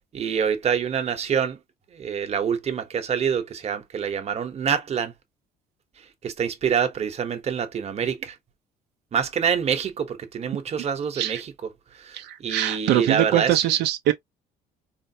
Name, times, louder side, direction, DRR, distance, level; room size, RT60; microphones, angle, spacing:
voice 1, 0.1-1.6 1.9-5.1 6.0-8.4 9.1-11.5 11.9-13.6, right 7 dB, 40° right, 1.0 m, -26 dB
voice 2, 12.1-14.1, right 12 dB, 80° right, 0.6 m, -23 dB
4.4 x 2.0 x 2.7 m
cardioid pair, 110°, 17 cm